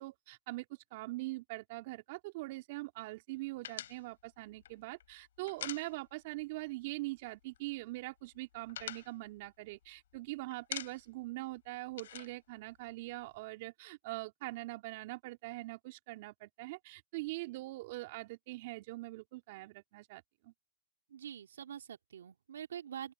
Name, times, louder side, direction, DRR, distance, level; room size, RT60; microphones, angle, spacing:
voice 1, 0.0-20.5, right 21 dB, 60° right, 3.0 m, -43 dB
sound 1, 3.6-6.4 6.7-6.9 7.2-7.8 8.2-10.2 10.5-11.3 11.5-13.3, left 11 dB, 75° left, 5.8 m, -46 dB
voice 2, 21.1-23.1, right 9 dB, 80° right, 3.2 m, -45 dB
open air
hypercardioid pair, 100°, 0 cm